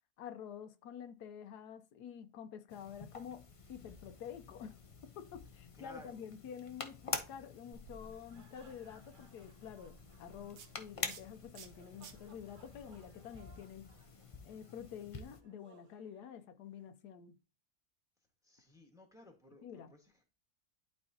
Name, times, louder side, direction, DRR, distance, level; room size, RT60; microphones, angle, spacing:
voice 1, 0.2-13.9 14.4-17.4 19.6-19.9, left 8 dB, 85° left, 1.3 m, -49 dB
sound 1, 2.7-15.4, left 4 dB, 50° left, 0.3 m, -48 dB
voice 2, 5.7-6.2 18.4-20.3, left 1 dB, ahead, 1.3 m, -57 dB
sound 2, 7.7-14.3, right 4 dB, 80° right, 1.5 m, -59 dB
sound 3, 7.8-16.9, right 4 dB, 40° right, 0.9 m, -66 dB
11.0 x 4.4 x 2.8 m
omnidirectional pair, 1.7 m